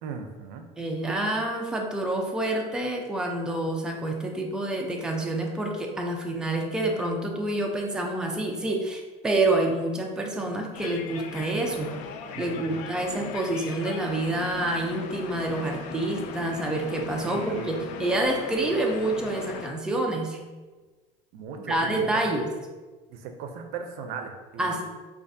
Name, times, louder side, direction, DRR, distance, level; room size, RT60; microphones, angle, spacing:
voice 1, 0.0-0.6 12.3-12.8 17.2-17.8 21.3-22.2 23.1-24.8, right 6 dB, 70° right, 5 dB, 0.5 m, -38 dB
voice 2, 0.8-11.9 12.4-20.4 21.7-22.5 24.6-24.8, right 2 dB, 5° right, 1 dB, 0.4 m, -28 dB
sound 1, 10.7-19.7, left 6 dB, 55° left, 0.4 m, -39 dB
4.4 x 2.4 x 2.6 m, 1.3 s
supercardioid pair, 125°, 15 cm